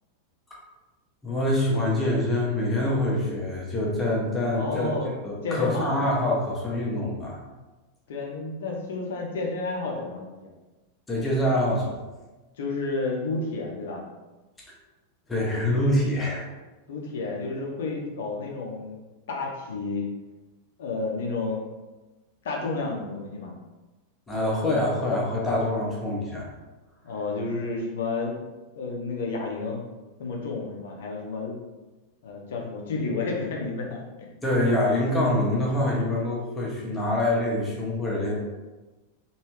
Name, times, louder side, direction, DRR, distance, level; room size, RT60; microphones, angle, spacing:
voice 1, 1.2-4.9 5.2-7.4 11.1-11.9 15.3-16.4 24.3-26.5 34.4-38.3, left 1 dB, 15° left, -4 dB, 1.0 m, -25 dB
voice 2, 4.5-5.1 5.4-6.0 8.1-10.5 12.6-14.0 16.9-19.0 19.3-20.1 20.8-21.6 22.4-23.5 27.0-28.4 28.8-29.8 30.2-31.6 32.2-34.0, left 3 dB, 60° left, -1 dB, 0.7 m, -31 dB
3.1 x 2.7 x 3.1 m, 1.2 s
figure-of-eight pair, 90°, 0 cm